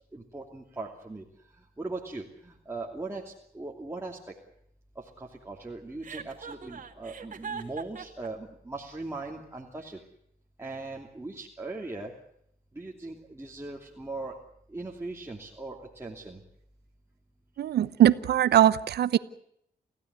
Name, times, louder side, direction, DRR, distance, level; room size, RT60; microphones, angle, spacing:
voice 1, 0.1-1.2 1.8-4.3 5.0-10.0 10.6-12.1 12.7-14.4 14.7-16.4, right 3 dB, 15° right, -1 dB, 2.8 m, -39 dB
Chuckle chortle, 6.0-8.3, right 6 dB, 55° right, 2.4 m, -40 dB
voice 2, 17.6-19.2, right 11 dB, 90° right, 15 dB, 0.8 m, -21 dB
29.5 x 15.5 x 8.3 m, 0.72 s
cardioid pair, 100°, 16 cm